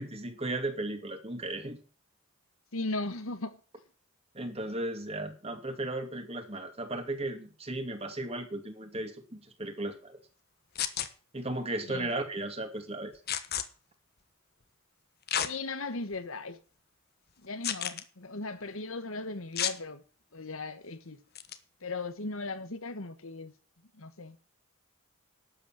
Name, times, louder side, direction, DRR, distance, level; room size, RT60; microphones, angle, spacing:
voice 1, 0.0-1.8 4.3-10.2 11.3-13.1, right 2 dB, 30° right, 2.5 m, -35 dB
voice 2, 2.7-3.6 11.8-12.1 15.4-16.6 17.4-20.0 20.3-21.2 21.8-23.5 23.9-24.4, left 3 dB, 70° left, 1.3 m, -37 dB
sound 1, 10.8-11.1 13.3-13.6 15.3-15.5 16.1-16.2 17.6-18.0 19.6-19.8 21.4-21.6, left 9 dB, 45° left, 1.2 m, -31 dB
12.5 x 8.4 x 7.6 m
head